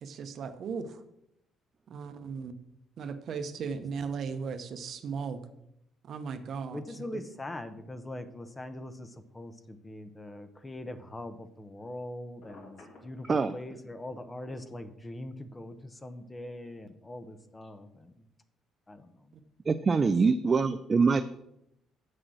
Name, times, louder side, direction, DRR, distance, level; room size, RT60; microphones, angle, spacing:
voice 1, 0.0-1.0 1.9-2.5 3.0-5.4 6.1-6.8, right 5 dB, 55° right, 9 dB, 0.9 m, -36 dB
voice 2, 6.7-18.3 18.9-19.2 20.0-20.1, left 1 dB, 15° left, 11 dB, 0.8 m, -42 dB
Telephone, 12.4-13.5, left 2 dB, 70° left, 3.6 m, -51 dB
voice 3, 19.7-21.2, right 4 dB, 30° right, 10 dB, 0.4 m, -24 dB
7.5 x 6.5 x 6.2 m, 0.80 s
cardioid pair, 125°, 0 cm